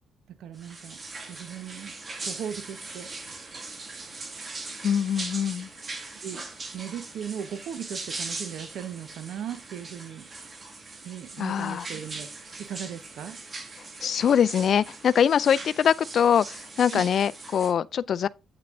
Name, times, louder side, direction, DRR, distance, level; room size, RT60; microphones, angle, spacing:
voice 1, 0.4-1.0 1.3-2.0 2.2-3.1 6.2-6.5 6.7-10.3 11.0-12.3 12.6-13.4 16.9-17.0, right 9 dB, 75° right, 1.1 m, -37 dB
sound 1, 0.6-17.7, right 3 dB, 35° right, 2.1 m, -40 dB
voice 2, 4.8-5.7 11.4-11.9 14.0-18.3, left 8 dB, 60° left, 0.4 m, -23 dB
8.9 x 8.6 x 2.6 m
cardioid pair, 90°, 0 cm